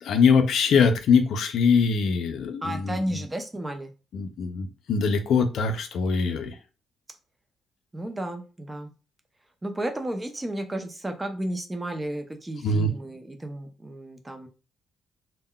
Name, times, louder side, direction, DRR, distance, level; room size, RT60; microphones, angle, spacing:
voice 1, 0.0-3.0 4.1-6.5 12.6-12.9, left 5 dB, 70° left, 0.4 m, -22 dB
voice 2, 2.6-3.9 7.9-8.9 9.6-14.5, right 1 dB, 15° right, 0.6 m, -33 dB
3.5 x 2.1 x 2.2 m
cardioid pair, 90°, 0 cm